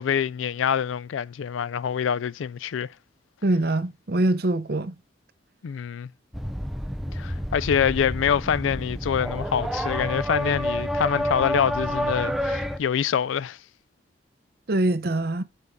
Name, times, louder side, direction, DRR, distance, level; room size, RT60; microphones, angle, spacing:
voice 1, 0.0-2.9 5.6-6.1 7.1-13.6, left 8 dB, 85° left, 0.4 m, -25 dB
voice 2, 3.4-4.9 14.7-15.4, right 2 dB, 50° right, 0.7 m, -23 dB
sound 1, 6.3-12.8, equal, ahead, 0.5 m, -29 dB
8.2 x 5.5 x 3.5 m
head